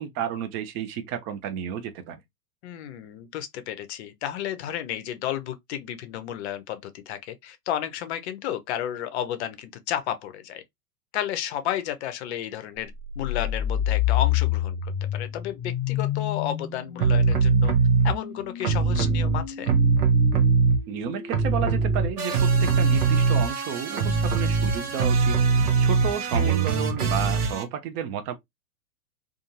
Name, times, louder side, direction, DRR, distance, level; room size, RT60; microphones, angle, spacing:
voice 1, 0.0-2.2 20.9-25.4 25.8-28.3, right 8 dB, 25° right, 0.4 m, -31 dB
voice 2, 2.6-10.6 11.1-17.7 18.0-19.7, left 10 dB, 45° left, 0.6 m, -32 dB
sound 1, 12.9-22.8, left 11 dB, 25° left, 1.1 m, -30 dB
sound 2, 17.0-18.1 18.6-21.0 21.3-27.6, right 5 dB, 70° right, 0.9 m, -21 dB
2.5 x 2.4 x 2.8 m
figure-of-eight pair, 100°, 46 cm